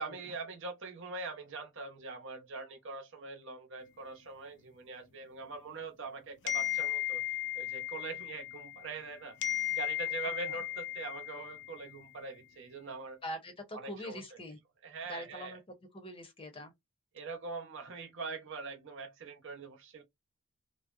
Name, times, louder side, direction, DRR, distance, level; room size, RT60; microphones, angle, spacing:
voice 1, 0.0-7.2 7.6-13.2 13.7-14.4 14.8-15.6 17.1-20.0, right 4 dB, 60° right, 0.7 m, -43 dB
sound 1, 6.5-9.1 9.4-12.0, left 12 dB, 55° left, 0.4 m, -36 dB
voice 2, 13.2-14.6 15.0-15.6 15.9-16.7, equal, 25° left, 0.7 m, -43 dB
2.6 x 2.0 x 2.3 m
head